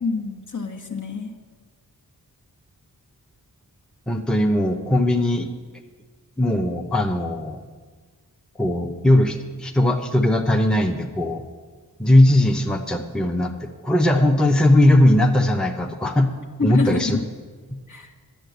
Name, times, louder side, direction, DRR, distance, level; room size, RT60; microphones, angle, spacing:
voice 1, 0.0-1.3 16.6-17.2 17.9-18.1, left 3 dB, 50° left, 4 dB, 1.3 m, -26 dB
voice 2, 4.1-5.5 6.4-7.6 8.6-11.4 12.0-16.3 16.6-17.2, left 1 dB, ahead, 4 dB, 0.8 m, -19 dB
10.0 x 7.6 x 7.9 m, 1.5 s
wide cardioid pair, 85°, 38 cm